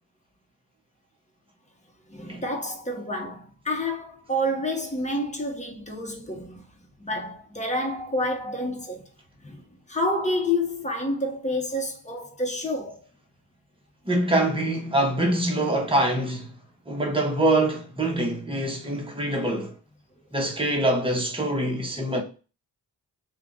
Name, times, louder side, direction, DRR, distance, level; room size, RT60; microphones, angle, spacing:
voice 1, 2.1-6.6 7.0-9.0 9.4-13.0, left 1 dB, 15° left, 1.2 m, -29 dB
voice 2, 14.1-16.5 16.9-19.7 20.3-22.2, right 1 dB, 15° right, 1.2 m, -24 dB
3.3 x 2.5 x 3.9 m
cardioid pair, 60°, 41 cm